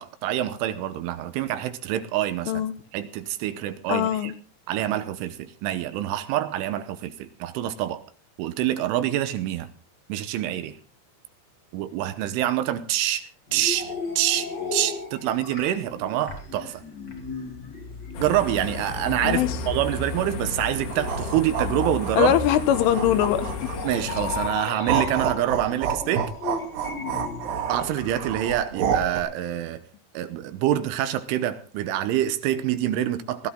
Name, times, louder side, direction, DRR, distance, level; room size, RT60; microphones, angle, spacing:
voice 1, 0.0-2.6 2.9-4.3 4.7-8.0 8.4-9.7 10.1-10.8 11.7-16.8 18.2-22.4 23.8-26.3 27.7-29.8 30.1-33.5, right 12 dB, 80° right, 3.3 m, -26 dB
voice 2, 3.9-4.3 19.2-19.6 22.2-23.7, left 11 dB, 80° left, 3.4 m, -22 dB
sound 1, 13.5-28.1, left 4 dB, 40° left, 1.6 m, -37 dB
sound 2, 18.1-24.5, left 4 dB, 60° left, 3.2 m, -33 dB
sound 3, 20.9-23.9 24.4-29.2, right 7 dB, 60° right, 3.6 m, -29 dB
20.0 x 14.0 x 3.7 m
omnidirectional pair, 5.8 m